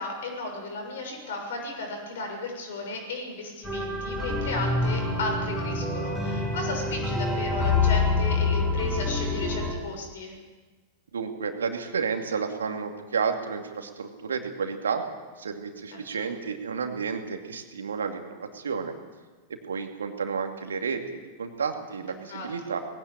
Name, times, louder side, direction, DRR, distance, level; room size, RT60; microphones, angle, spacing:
voice 1, 0.0-10.3 15.9-16.3 22.3-22.8, left 2 dB, 60° left, 3 dB, 6.8 m, -34 dB
sound 1, 3.6-9.7, left 3 dB, 5° left, 6.5 m, -26 dB
voice 2, 11.1-15.0 15.4-18.9 19.5-22.8, right 5 dB, 70° right, 5 dB, 2.4 m, -31 dB
20.0 x 16.5 x 9.1 m, 1.3 s
figure-of-eight pair, 90°, 0 cm